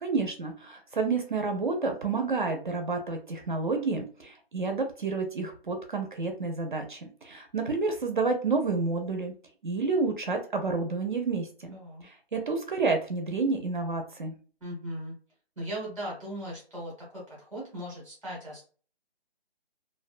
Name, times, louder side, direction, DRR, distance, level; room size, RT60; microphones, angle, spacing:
voice 1, 0.0-9.3 9.6-14.3, right 4 dB, 50° right, 4 dB, 0.4 m, -30 dB
voice 2, 11.7-12.0 14.6-15.1 15.6-18.6, equal, ahead, -6 dB, 0.6 m, -38 dB
2.5 x 2.1 x 2.4 m, 0.41 s
hypercardioid pair, 165°, 32 cm